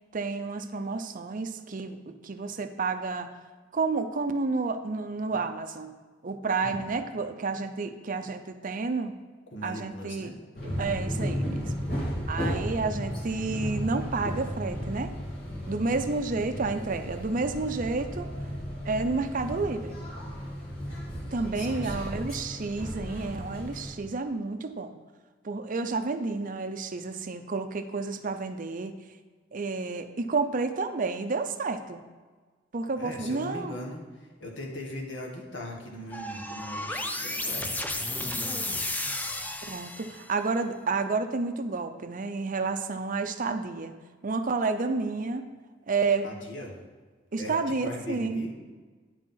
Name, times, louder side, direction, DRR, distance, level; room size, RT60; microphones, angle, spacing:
voice 1, 0.1-3.3 3.7-5.9 6.2-9.1 9.6-10.3 10.8-11.7 12.3-15.1 15.7-18.3 18.8-20.0 21.3-24.9 25.4-28.9 29.5-32.0 32.7-33.7 39.7-43.9 44.2-45.5 45.9-46.3 47.3-48.5, right 3 dB, 45° right, 8 dB, 0.6 m, -30 dB
voice 2, 9.5-10.4 21.5-22.2 33.0-38.9 46.2-46.8 47.4-48.5, left 1 dB, 70° left, 0 dB, 1.6 m, -40 dB
sound 1, 10.5-23.9, equal, 55° left, 2.2 m, -34 dB
sound 2, 36.1-40.4, left 2 dB, 10° left, 0.5 m, -33 dB
9.7 x 5.0 x 5.6 m, 1.4 s
head